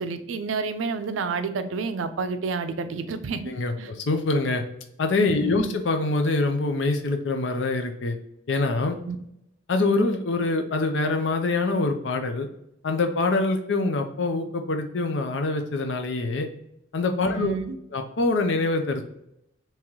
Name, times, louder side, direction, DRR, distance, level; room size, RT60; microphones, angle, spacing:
voice 1, 0.0-3.4 3.8-3.9 5.4-5.7 9.0-9.2 17.3-17.8, right 4 dB, 85° right, 9 dB, 0.4 m, -29 dB
voice 2, 4.1-4.6 5.0-8.2 8.5-9.0 9.7-12.5 12.8-16.5 16.9-17.5 17.9-19.0, left 3 dB, 70° left, 5 dB, 0.5 m, -24 dB
3.0 x 2.9 x 3.6 m, 0.81 s
head